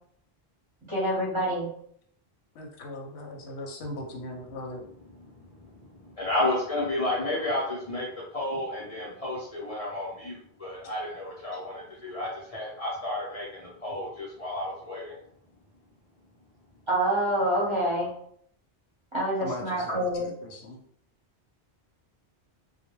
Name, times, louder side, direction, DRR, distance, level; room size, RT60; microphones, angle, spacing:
voice 1, 0.9-1.7 16.9-18.1 19.1-20.3, right 1 dB, 30° right, -7 dB, 0.8 m, -26 dB
voice 2, 2.6-4.8 13.9-14.0 19.4-20.8, left 1 dB, 85° left, 1 dB, 0.9 m, -39 dB
voice 3, 5.5-15.2, left 1 dB, 45° left, -5 dB, 0.6 m, -32 dB
2.2 x 2.1 x 3.0 m, 0.64 s
omnidirectional pair, 1.1 m